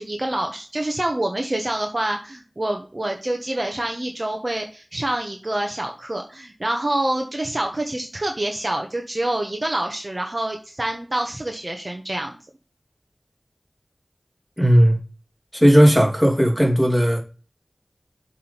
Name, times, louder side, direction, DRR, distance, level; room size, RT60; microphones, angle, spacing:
voice 1, 0.0-12.4, right 1 dB, 45° right, 1.3 m, -26 dB
voice 2, 14.6-15.0 15.5-17.2, equal, ahead, 3.5 m, -15 dB
7.5 x 3.8 x 5.7 m
wide cardioid pair, 50°, 0 cm